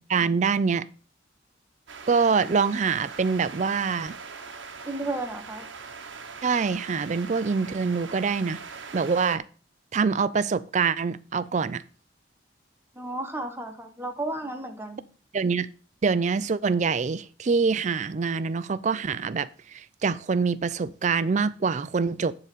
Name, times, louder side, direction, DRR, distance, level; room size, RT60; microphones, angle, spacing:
voice 1, 0.1-0.9 2.1-4.2 6.4-8.6 8.9-9.4 9.9-11.8 15.3-15.7 16.0-22.3, right 5 dB, 40° right, 0.4 m, -25 dB
sound 1, 1.9-9.4, right 5 dB, 85° right, 1.0 m, -41 dB
voice 2, 4.8-5.7 12.9-15.0, right 2 dB, 10° right, 1.1 m, -33 dB
9.8 x 3.9 x 6.7 m
head